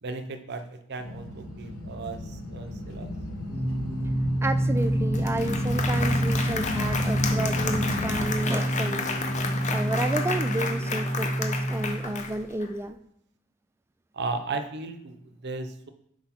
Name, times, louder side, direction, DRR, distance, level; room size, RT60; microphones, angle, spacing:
voice 1, 0.0-3.1 14.1-15.9, right 3 dB, 55° right, 9 dB, 0.6 m, -35 dB
sound 1, 1.0-8.3, left 1 dB, 75° left, 1.2 m, -35 dB
Singing, 3.4-12.4, right 1 dB, 20° left, 1.1 m, -28 dB
voice 2, 4.4-9.0 9.3-13.0, right 1 dB, 10° right, 10 dB, 0.3 m, -31 dB
Applause, 4.8-4.9 5.1-12.7, left 4 dB, 35° left, 0.7 m, -32 dB
5.9 x 4.6 x 4.4 m, 0.71 s
head